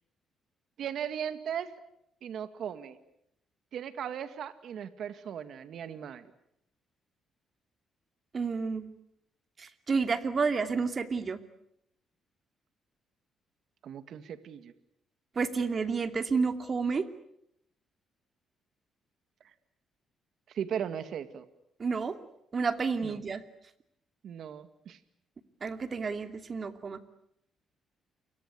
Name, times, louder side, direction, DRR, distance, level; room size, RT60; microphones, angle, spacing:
voice 1, 0.8-1.7 2.2-3.0 3.7-6.3 13.8-14.7 20.5-21.5 23.0-23.2 24.2-25.0, right 8 dB, 70° right, 11 dB, 2.0 m, -37 dB
voice 2, 8.3-8.9 9.6-11.4 15.4-17.0 21.8-22.1 22.5-23.4 25.6-27.0, right 5 dB, 40° right, 9 dB, 2.6 m, -30 dB
29.5 x 23.5 x 8.4 m, 0.76 s
cardioid pair, 90°, 0 cm